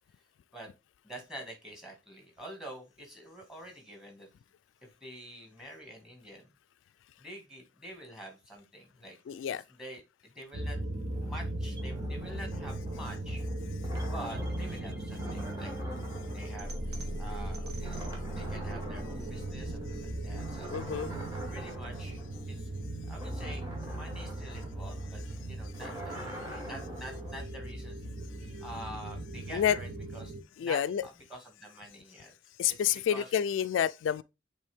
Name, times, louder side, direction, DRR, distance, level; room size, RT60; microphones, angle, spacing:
voice 1, 1.0-4.3 4.8-6.5 7.2-9.2 9.5-10.8 11.2-13.4 14.0-15.7 16.3-16.7 17.2-20.8 21.5-22.2 22.5-22.7 23.1-28.0 28.4-30.3 30.6-32.3 32.7-33.4, equal, 5° right, 1.9 m, -47 dB
voice 2, 9.3-9.6 20.7-21.1 29.5-29.8 30.6-31.0 32.6-34.2, left 9 dB, 85° left, 0.3 m, -28 dB
sound 1, 10.5-30.4, right 1 dB, 75° right, 1.2 m, -38 dB
sound 2, 11.1-17.5 17.8-19.8 20.3-27.4, equal, 20° right, 2.1 m, -45 dB
sound 3, 11.7-23.8, equal, 60° right, 1.6 m, -44 dB
8.2 x 3.4 x 3.5 m
head